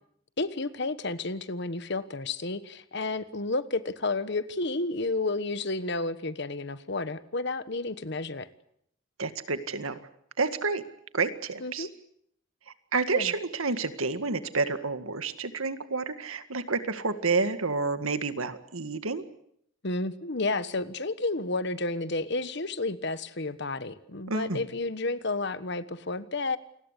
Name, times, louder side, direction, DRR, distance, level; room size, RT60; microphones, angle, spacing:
voice 1, 0.4-8.5 11.6-11.9 13.1-13.3 19.8-26.6, left 2 dB, 55° left, 14 dB, 1.3 m, -31 dB
voice 2, 9.2-10.0 10.4-10.8 11.1-11.9 12.9-19.2 24.3-24.6, right 4 dB, 85° right, 10 dB, 2.0 m, -29 dB
28.5 x 20.5 x 8.3 m, 0.72 s
head